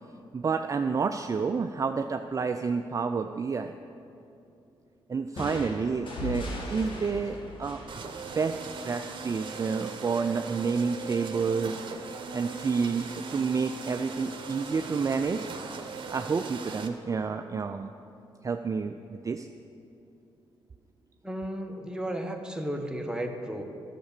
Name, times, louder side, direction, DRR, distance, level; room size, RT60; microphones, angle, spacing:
voice 1, 0.3-3.7 5.1-7.8 8.4-8.6 8.8-11.8 12.3-15.5 16.1-17.9 18.4-19.5, right 5 dB, 35° right, 7 dB, 0.4 m, -29 dB
sound 1, 5.4-9.0, left 1 dB, 55° left, 2.4 m, -38 dB
sound 2, 7.9-16.9, right 5 dB, 55° right, 1.0 m, -39 dB
voice 2, 21.2-23.6, right 1 dB, 5° right, 3 dB, 1.2 m, -34 dB
11.5 x 6.7 x 6.7 m, 2.7 s
cardioid pair, 65°, 10 cm